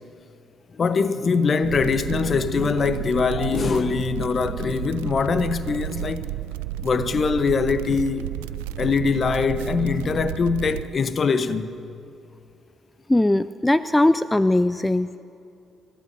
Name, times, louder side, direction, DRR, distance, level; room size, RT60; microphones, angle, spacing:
voice 1, 0.8-6.3 6.8-8.3 8.8-11.8, left 5 dB, 50° left, 0.9 m, -23 dB
sound 1, 1.6-10.8, right 14 dB, 85° right, 0.3 m, -32 dB
voice 2, 13.1-15.2, left 1 dB, 10° left, 0.4 m, -20 dB
29.5 x 15.0 x 2.7 m
hypercardioid pair, 45°, 0 cm